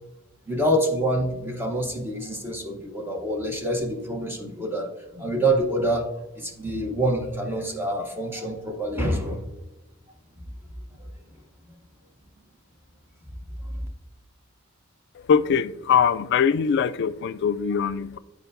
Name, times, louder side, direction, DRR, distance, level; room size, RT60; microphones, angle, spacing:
voice 1, 0.5-6.1 6.4-9.4 13.6-13.8, right 1 dB, 10° right, 0.7 m, -26 dB
voice 2, 15.1-18.2, left 7 dB, 60° left, 0.3 m, -22 dB
10.5 x 4.7 x 2.5 m
head